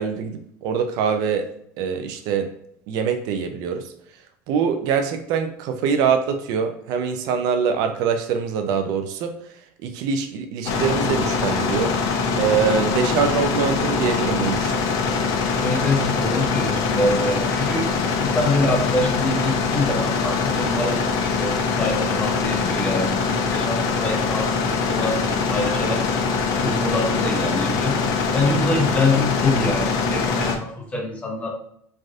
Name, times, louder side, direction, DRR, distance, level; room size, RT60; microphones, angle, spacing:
voice 1, 0.0-1.5 1.8-2.5 2.9-3.9 4.5-9.3 9.8-12.0 12.3-14.7, right 6 dB, 65° right, 7 dB, 0.3 m, -23 dB
sound 1, 10.7-30.6, left 4 dB, 60° left, 0.5 m, -23 dB
voice 2, 15.6-17.9 18.2-26.0 26.6-28.0 28.3-31.5, left 2 dB, 15° left, 0 dB, 0.6 m, -25 dB
3.2 x 2.6 x 2.3 m, 0.71 s
cardioid pair, 140°, 7 cm